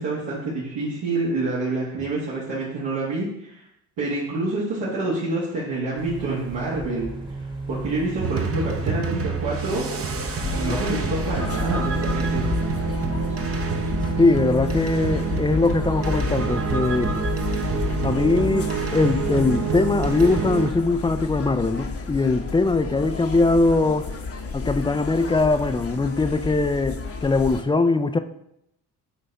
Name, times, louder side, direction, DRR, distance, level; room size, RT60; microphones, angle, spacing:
voice 1, 0.0-3.6 4.0-7.1 7.7-9.8 10.5-12.5, right 2 dB, 70° right, -8 dB, 1.8 m, -27 dB
sound 1, 6.0-17.3, right 2 dB, 10° right, 1.1 m, -36 dB
sound 2, 8.2-20.7, right 6 dB, 35° right, 0.8 m, -27 dB
sound 3, 10.4-27.6, left 4 dB, 35° left, 0.9 m, -31 dB
voice 2, 14.2-17.3 18.0-24.1 24.5-28.2, left 3 dB, 10° left, 10 dB, 0.4 m, -21 dB
7.1 x 4.0 x 3.4 m, 0.78 s
supercardioid pair, 60°, 42 cm